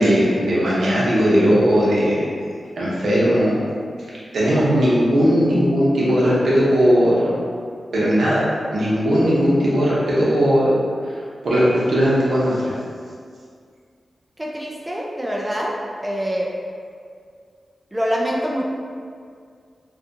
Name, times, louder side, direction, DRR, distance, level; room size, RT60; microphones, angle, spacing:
voice 1, 0.0-2.2 2.8-3.6 4.3-7.4 7.9-10.7 11.0-12.7, equal, 80° right, -7 dB, 0.7 m, -18 dB
voice 2, 14.4-15.7 16.0-16.5 17.9-18.6, equal, 15° right, -2 dB, 0.3 m, -24 dB
2.6 x 2.3 x 2.5 m, 2.1 s
cardioid pair, 65°, 0 cm